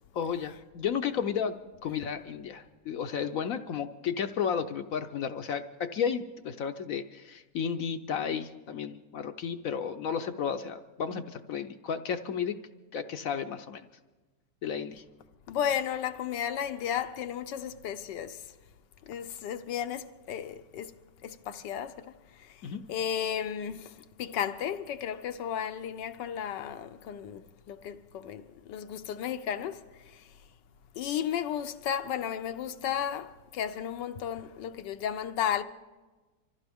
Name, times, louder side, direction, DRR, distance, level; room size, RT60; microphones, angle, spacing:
voice 1, 0.1-1.5 1.8-12.6 12.9-13.9 14.6-15.0 22.6-22.8, left 7 dB, 65° left, 0.9 m, -33 dB
voice 2, 15.5-18.4 19.1-22.1 22.4-22.6 22.9-29.9 30.1-30.2 31.0-35.6, left 9 dB, 80° left, 1.4 m, -34 dB
25.5 x 15.0 x 3.5 m
omnidirectional pair, 1.9 m